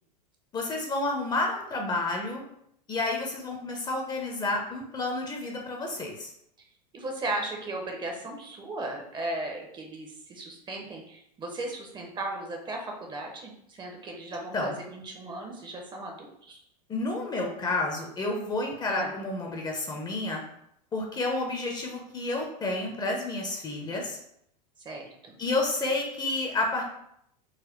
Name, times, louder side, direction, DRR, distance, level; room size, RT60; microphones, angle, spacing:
voice 1, 0.5-2.4 2.9-6.3 14.5-14.8 16.9-20.4 20.9-24.2 25.4-26.8, left 2 dB, 20° left, 1 dB, 0.6 m, -30 dB
voice 2, 6.9-16.6 18.9-19.1 24.8-25.3, right 2 dB, 20° right, 1 dB, 0.7 m, -36 dB
4.0 x 2.2 x 3.0 m, 0.74 s
hypercardioid pair, 95°, 20 cm